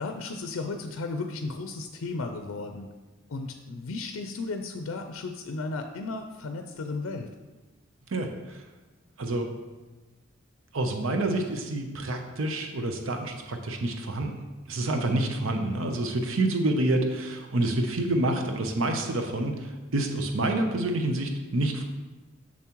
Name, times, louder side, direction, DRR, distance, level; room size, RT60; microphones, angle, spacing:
voice 1, 0.0-2.9 3.3-7.3 15.6-15.8, left 3 dB, 90° left, 6 dB, 0.4 m, -34 dB
voice 2, 8.1-8.6 9.2-9.5 10.7-14.3 14.7-21.8, right 2 dB, 85° right, 5 dB, 0.7 m, -28 dB
7.1 x 6.3 x 3.0 m, 1.2 s
head